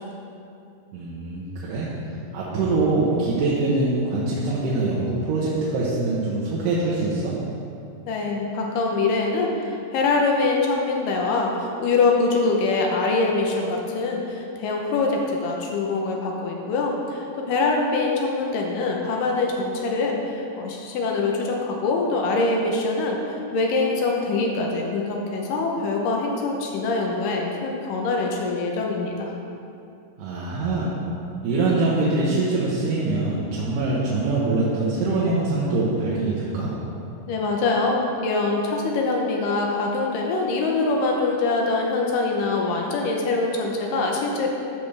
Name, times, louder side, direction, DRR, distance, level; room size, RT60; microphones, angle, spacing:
voice 1, 0.9-1.9 2.3-7.3 30.2-30.9 31.4-36.7, right 2 dB, 75° right, -7 dB, 2.5 m, -23 dB
voice 2, 8.1-29.3 37.3-44.5, left 3 dB, 80° left, 0 dB, 2.4 m, -24 dB
12.5 x 5.7 x 3.4 m, 2.6 s
omnidirectional pair, 3.9 m